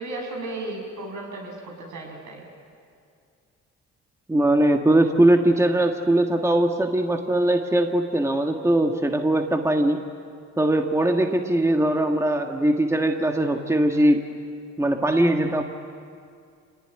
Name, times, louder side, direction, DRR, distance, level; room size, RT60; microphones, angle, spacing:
voice 1, 0.0-2.5, right 2 dB, 70° right, 1 dB, 7.5 m, -34 dB
voice 2, 4.3-10.0 10.6-14.3 14.8-15.6, right 1 dB, 10° right, 4 dB, 1.6 m, -21 dB
27.0 x 19.5 x 9.9 m, 2.4 s
cardioid pair, 90°, 30 cm